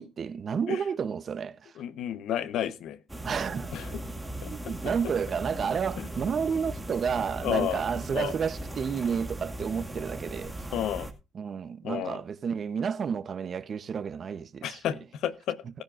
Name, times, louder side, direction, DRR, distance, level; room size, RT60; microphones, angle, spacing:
voice 1, 0.0-1.7 3.2-3.8 4.4-10.5 11.3-14.8, right 6 dB, 50° right, 0.9 m, -31 dB
voice 2, 1.8-3.0 3.7-4.0 4.4-4.5 6.0-6.1 7.4-7.8 8.1-8.3 10.7-11.1 11.8-12.2 14.6-15.8, left 10 dB, 80° left, 1.1 m, -31 dB
sound 1, 3.1-11.1, right 1 dB, 10° right, 2.0 m, -38 dB
18.0 x 10.5 x 2.5 m
cardioid pair, 90°, 0 cm